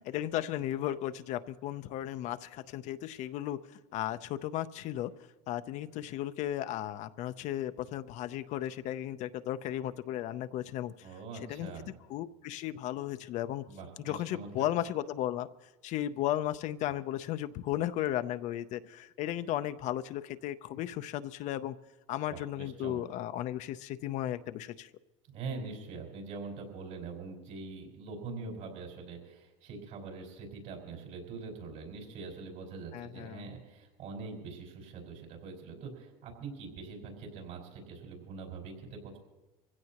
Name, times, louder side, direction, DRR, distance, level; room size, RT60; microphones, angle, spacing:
voice 1, 0.0-5.1 5.5-11.1 11.5-11.7 12.1-13.7 14.1-15.5 15.8-21.7 22.1-24.9 32.9-33.5, left 12 dB, 55° left, 12 dB, 0.6 m, -35 dB
voice 2, 11.0-11.9 13.7-14.7 22.3-23.0 25.3-39.2, right 4 dB, 65° right, 1 dB, 5.1 m, -43 dB
24.0 x 16.0 x 2.9 m, 1.1 s
supercardioid pair, 110°, 14 cm